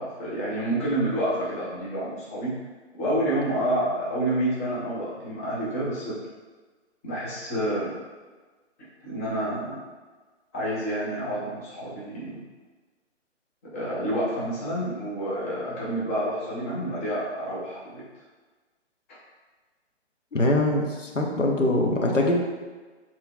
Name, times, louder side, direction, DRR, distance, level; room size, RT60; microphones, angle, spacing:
voice 1, 0.0-2.5 3.0-6.2 7.0-7.9 9.0-9.8 10.5-12.4 13.7-18.0 19.1-19.2, right 1 dB, 10° left, -8 dB, 0.6 m, -28 dB
voice 2, 20.3-22.4, left 1 dB, 85° left, 0 dB, 0.9 m, -23 dB
7.2 x 3.0 x 2.3 m, 1.3 s
figure-of-eight pair, 135°, 36 cm